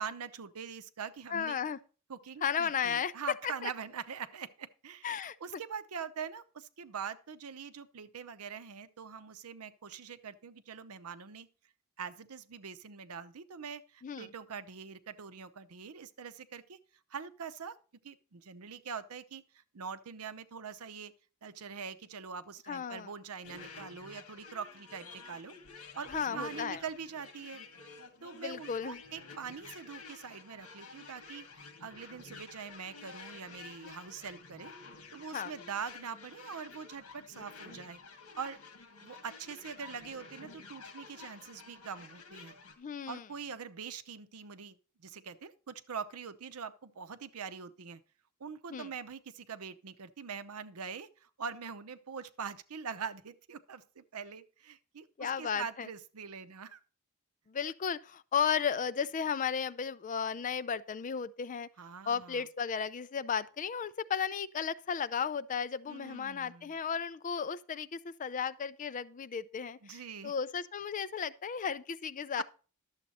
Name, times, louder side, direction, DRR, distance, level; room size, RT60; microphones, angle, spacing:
voice 1, 0.0-1.6 2.1-5.1 5.4-11.5 12.0-16.8 17.1-17.8 18.0-21.1 21.4-25.5 25.9-27.6 28.2-34.7 35.1-38.0 38.3-38.6 39.0-42.5 43.1-48.0 48.4-56.8 61.8-62.4 65.9-66.7 69.8-70.3 72.4-72.5, right 6 dB, 85° right, 0.7 m, -43 dB
voice 2, 1.3-1.8 2.4-3.1 3.4-3.7 5.0-5.6 14.0-14.3 22.7-23.1 26.1-26.8 28.3-29.0 35.3-35.5 42.8-43.2 48.7-48.9 55.2-55.9 57.5-61.7 62.1-72.4, left 7 dB, 35° left, 0.4 m, -34 dB
sound 1, 23.4-42.8, left 4 dB, 70° left, 1.7 m, -51 dB
11.5 x 7.3 x 4.2 m
head